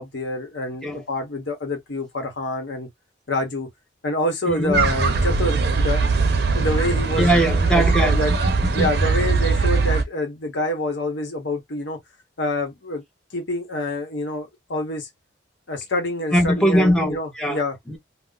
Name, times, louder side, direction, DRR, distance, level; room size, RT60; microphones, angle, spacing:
voice 1, 0.0-2.9 3.3-3.7 4.0-6.0 6.5-7.3 7.6-8.3 8.7-12.0 12.4-13.0 13.3-15.1 15.7-17.8, left 1 dB, 75° left, 0.9 m, -27 dB
voice 2, 4.5-4.8 7.2-8.9 16.3-17.6 17.9-18.0, equal, 5° left, 0.7 m, -21 dB
sound 1, 4.7-10.0, right 4 dB, 55° right, 0.5 m, -20 dB
2.4 x 2.0 x 3.6 m
head